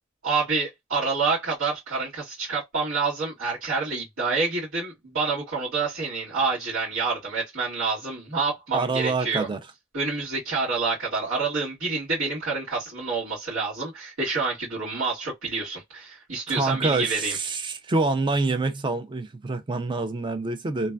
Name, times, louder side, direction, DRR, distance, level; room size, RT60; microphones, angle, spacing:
voice 1, 0.2-9.5 9.9-17.4, right 4 dB, 80° right, 1.8 m, -28 dB
voice 2, 8.7-9.6 16.5-20.9, right 3 dB, 25° right, 0.4 m, -26 dB
3.2 x 2.3 x 2.2 m
head